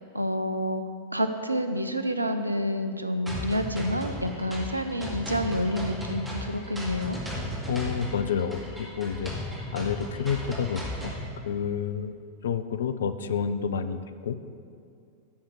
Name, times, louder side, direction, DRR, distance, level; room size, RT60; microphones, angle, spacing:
voice 1, 0.1-0.8 1.1-7.2, equal, 85° right, 8 dB, 0.6 m, -28 dB
sound 1, 3.3-11.3, left 1 dB, 10° right, 2.3 m, -36 dB
voice 2, 7.7-9.3 9.7-11.2 11.4-12.1 12.4-14.4, left 7 dB, 65° left, 11 dB, 0.5 m, -29 dB
11.5 x 5.7 x 6.5 m, 2.4 s
figure-of-eight pair, 90°, 0 cm